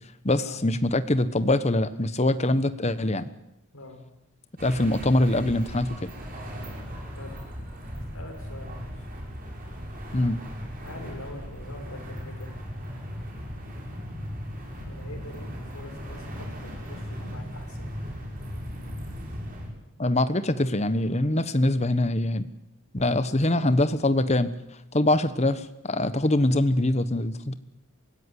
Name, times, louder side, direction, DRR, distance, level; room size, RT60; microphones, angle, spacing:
voice 1, 0.2-3.3 4.6-6.1 10.1-10.4 20.0-22.5 22.9-24.5 24.9-27.5, left 1 dB, 30° left, 12 dB, 1.1 m, -23 dB
sound 1, 4.6-19.7, equal, 40° right, 6.6 m, -37 dB
voice 2, 7.2-7.7 7.9-9.1 10.8-12.6 14.9-17.9 23.1-23.8, left 1 dB, 75° left, 3 dB, 5.8 m, -44 dB
24.0 x 16.5 x 9.8 m, 0.90 s
head